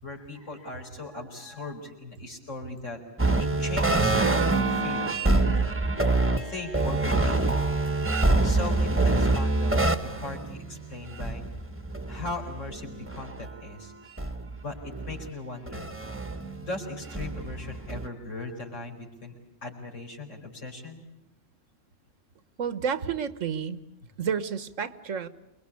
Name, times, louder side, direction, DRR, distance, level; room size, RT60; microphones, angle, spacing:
voice 1, 0.0-3.0 3.4-5.2 6.4-7.7 8.4-11.4 12.1-13.9 14.6-15.9 16.6-19.3 19.6-21.0, left 2 dB, 75° left, 1 dB, 5.0 m, -38 dB
sound 1, 3.2-13.5 14.2-15.3 15.7-18.1, right 2 dB, 10° right, 1.1 m, -26 dB
voice 2, 22.6-23.8 24.2-25.3, right 7 dB, 80° right, 14 dB, 1.5 m, -30 dB
28.5 x 21.5 x 8.4 m, 0.98 s
omnidirectional pair, 1.3 m